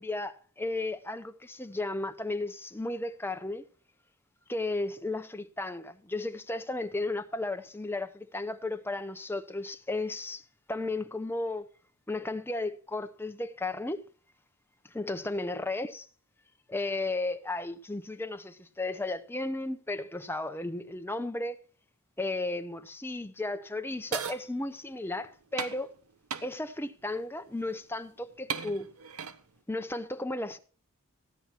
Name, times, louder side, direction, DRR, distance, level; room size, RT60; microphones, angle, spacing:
voice 1, 0.0-3.7 4.5-10.4 10.7-11.7 12.1-14.0 14.9-16.1 16.7-21.6 22.2-25.9 26.4-28.9 29.7-30.6, left 2 dB, 10° left, 0.7 m, -34 dB
sound 1, 24.1-24.4 25.6-25.8 26.3-26.5 27.7-27.8 28.5-29.4, right 7 dB, 80° right, 0.9 m, -35 dB
15.0 x 9.9 x 4.4 m
head